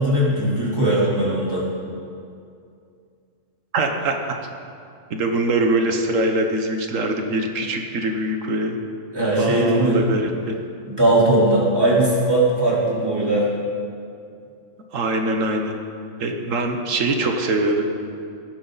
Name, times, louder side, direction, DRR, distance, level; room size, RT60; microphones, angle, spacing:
voice 1, 0.0-1.7 9.1-10.0 10.8-13.5, right 1 dB, 20° right, -7 dB, 3.5 m, -19 dB
voice 2, 3.7-4.4 5.1-8.8 9.4-10.5 14.9-15.8 16.2-17.9, right 2 dB, 80° right, 4 dB, 1.4 m, -23 dB
17.0 x 12.0 x 4.0 m, 2.4 s
omnidirectional pair, 1.3 m